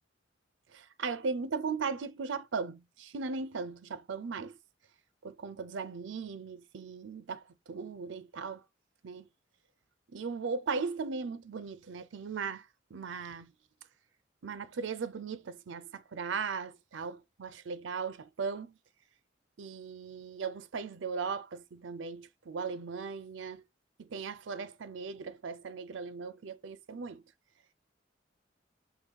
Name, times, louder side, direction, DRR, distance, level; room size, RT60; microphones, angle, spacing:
voice 1, 0.7-4.5 5.2-8.6 9.0-9.3 10.1-12.7 12.9-13.5 14.4-18.7 19.6-23.6 24.0-27.2, right 5 dB, 85° right, 0.5 m, -38 dB
3.9 x 2.6 x 4.5 m
head